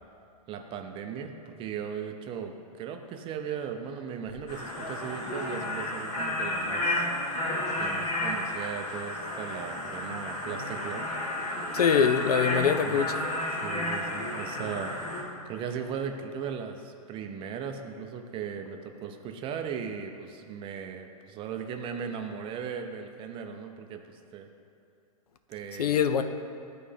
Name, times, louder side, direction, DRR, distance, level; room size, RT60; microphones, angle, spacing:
voice 1, 0.5-7.1 7.8-11.0 12.9-13.0 13.6-15.0 15.5-24.5 25.5-26.0, right 7 dB, 25° right, 0.6 m, -37 dB
sound 1, 4.5-15.2, left 1 dB, 60° left, 1.9 m, -32 dB
voice 2, 11.7-13.3 25.8-26.2, left 7 dB, 80° left, 0.5 m, -24 dB
12.5 x 4.3 x 3.4 m
hypercardioid pair, 115°, 20 cm